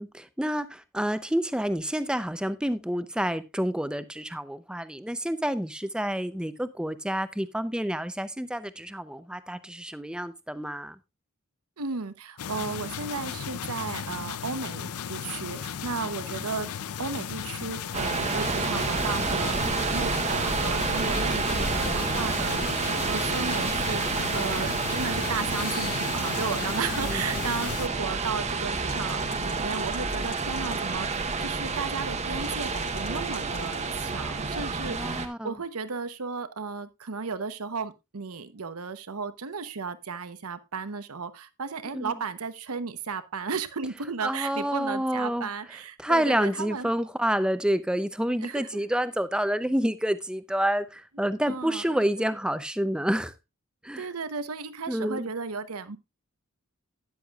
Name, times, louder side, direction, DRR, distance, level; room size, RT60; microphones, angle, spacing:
voice 1, 0.0-11.0 26.8-27.2 34.9-35.6 41.9-42.1 44.2-45.5 46.0-53.3 53.8-54.1 54.9-55.3, equal, 5° right, 0.5 m, -28 dB
voice 2, 11.8-16.7 17.0-46.9 48.4-48.8 51.5-52.3 54.0-56.0, right 5 dB, 85° right, 0.9 m, -34 dB
sound 1, 12.4-27.9, left 8 dB, 85° left, 0.5 m, -35 dB
sound 2, 17.9-35.3, right 4 dB, 30° right, 0.9 m, -29 dB
sound 3, 25.5-27.3 28.7-31.0 32.4-34.0, left 6 dB, 70° left, 3.5 m, -46 dB
12.5 x 9.9 x 2.4 m
head